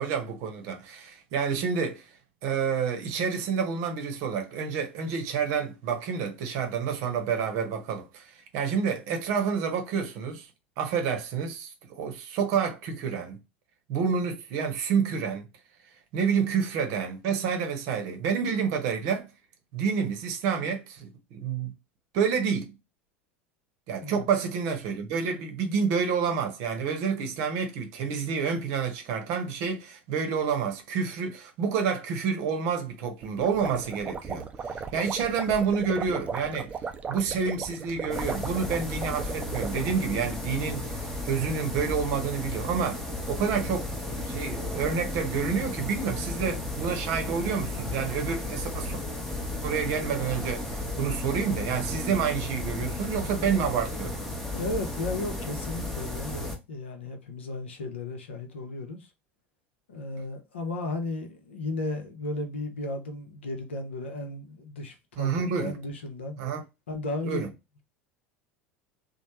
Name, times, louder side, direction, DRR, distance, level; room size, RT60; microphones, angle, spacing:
voice 1, 0.0-2.1 2.4-10.5 10.8-13.4 13.9-15.5 16.1-19.3 19.7-21.7 22.1-22.7 23.9-36.8 37.1-43.9 44.2-49.0 49.6-54.2 65.2-65.7 66.4-66.6 67.2-67.5, right 6 dB, 50° right, 0.8 m, -29 dB
sound 1, 33.2-40.1, right 5 dB, 20° right, 0.4 m, -36 dB
sound 2, 38.1-56.6, left 2 dB, 5° left, 0.8 m, -34 dB
voice 2, 54.5-59.1 59.9-66.4 66.9-67.5, left 2 dB, 70° left, 0.7 m, -34 dB
3.1 x 2.1 x 2.9 m
figure-of-eight pair, 75°, 6 cm